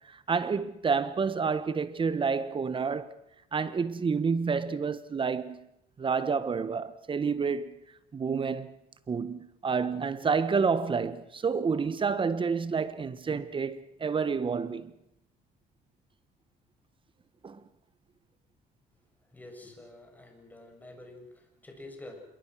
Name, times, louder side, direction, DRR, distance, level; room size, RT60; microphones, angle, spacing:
voice 1, 0.1-3.1 3.5-5.6 6.0-7.8 8.1-8.7 9.1-14.9 17.4-17.6, right 5 dB, 30° right, 1.4 m, -29 dB
voice 2, 19.2-22.2, left 2 dB, 10° left, 7.3 m, -48 dB
26.5 x 22.5 x 6.3 m
cardioid pair, 110°, 17 cm